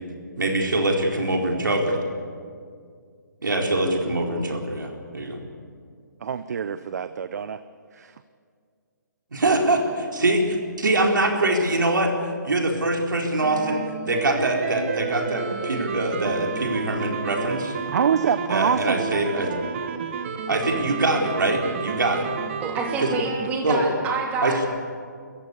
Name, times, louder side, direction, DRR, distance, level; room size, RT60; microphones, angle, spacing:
voice 1, 0.4-2.0 3.4-5.4 9.3-12.1 12.4-17.7 18.5-19.5 20.5-22.3 23.0-23.1 23.6-23.8 24.4-24.5, right 2 dB, 85° right, 1 dB, 4.3 m, -23 dB
voice 2, 6.2-7.6 7.9-8.1 17.9-19.1, right 7 dB, 55° right, 12 dB, 0.8 m, -25 dB
sound 1, 13.4-23.5, right 7 dB, 40° right, 1.5 m, -31 dB
voice 3, 22.6-24.6, right 4 dB, 15° right, 0 dB, 2.9 m, -27 dB
25.5 x 14.5 x 8.5 m, 2.1 s
hypercardioid pair, 155°, 10 cm